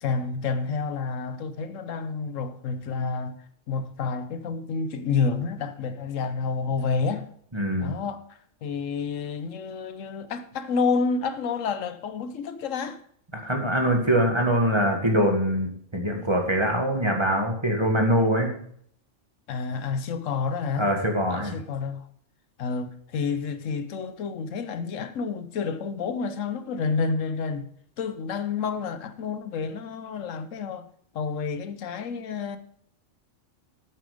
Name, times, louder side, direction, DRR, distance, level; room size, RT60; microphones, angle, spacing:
voice 1, 0.0-3.4 3.7-7.3 7.8-8.2 8.6-13.0 17.1-17.2 19.5-20.9 21.3-22.1 22.6-27.7 28.0-30.9 31.1-32.6, left 5 dB, 80° left, 1.2 m, -29 dB
voice 2, 7.5-7.9 13.4-18.5 20.8-21.5, equal, 20° right, 1.8 m, -23 dB
8.8 x 8.6 x 5.1 m
omnidirectional pair, 1.3 m